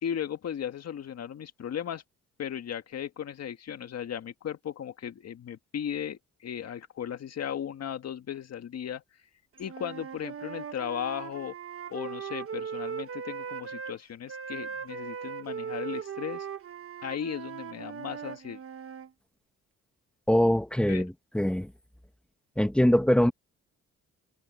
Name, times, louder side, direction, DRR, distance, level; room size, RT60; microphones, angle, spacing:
voice 1, 0.0-2.0 2.4-9.0 9.6-11.5 11.9-16.5 17.0-18.6 20.9-21.1, left 9 dB, 60° left, 1.7 m, -36 dB
Wind instrument woodwind instrument, 9.6-14.0 14.3-19.1, right 7 dB, 45° right, 1.4 m, -39 dB
voice 2, 20.3-21.7 22.6-23.3, equal, 5° left, 2.0 m, -23 dB
cardioid pair, 90°, 30 cm